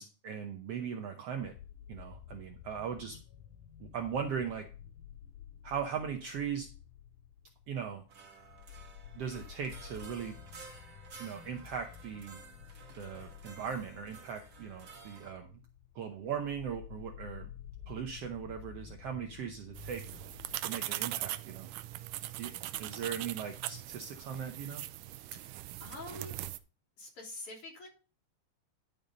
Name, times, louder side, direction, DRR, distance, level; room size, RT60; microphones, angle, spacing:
voice 1, 0.0-1.5 1.9-3.2 3.8-4.7 5.6-6.7 7.7-8.0 9.1-10.3 11.2-12.4 13.0-15.6 15.9-17.5 17.9-20.0 20.6-21.7 22.4-22.5 22.8-24.8, right 7 dB, 70° right, 4 dB, 1.6 m, -39 dB
sound 1, 1.4-20.6, left 10 dB, 85° left, 2.3 m, -52 dB
sound 2, 8.1-15.3, right 5 dB, 40° right, 1.7 m, -53 dB
sound 3, 19.8-26.6, right 15 dB, 90° right, 2.2 m, -40 dB
voice 2, 20.8-21.1 25.3-25.5 25.8-26.4 27.0-27.9, left 2 dB, 45° left, -2 dB, 4.1 m, -46 dB
11.5 x 5.4 x 5.2 m, 0.35 s
omnidirectional pair, 3.6 m